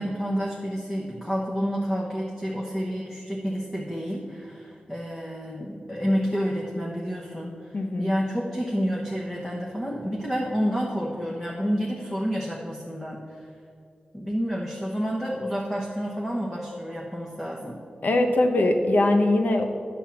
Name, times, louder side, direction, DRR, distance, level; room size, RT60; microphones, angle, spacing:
voice 1, 0.0-13.2 14.1-17.8, equal, 10° left, -3 dB, 1.0 m, -29 dB
voice 2, 7.7-8.1 18.0-19.7, left 2 dB, 60° left, 5 dB, 0.9 m, -21 dB
10.5 x 3.6 x 7.1 m, 2.4 s
wide cardioid pair, 75°, 3 cm